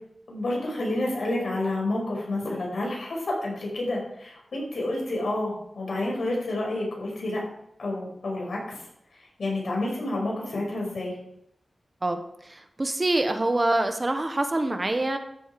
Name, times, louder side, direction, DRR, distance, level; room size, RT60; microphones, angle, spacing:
voice 1, 0.3-7.5 7.8-8.8 9.1-11.2, left 2 dB, 80° left, -2 dB, 5.6 m, -29 dB
voice 2, 12.0-15.2, right 2 dB, 30° right, 7 dB, 1.3 m, -25 dB
13.0 x 8.0 x 5.2 m, 0.77 s
wide cardioid pair, 95°, 0 cm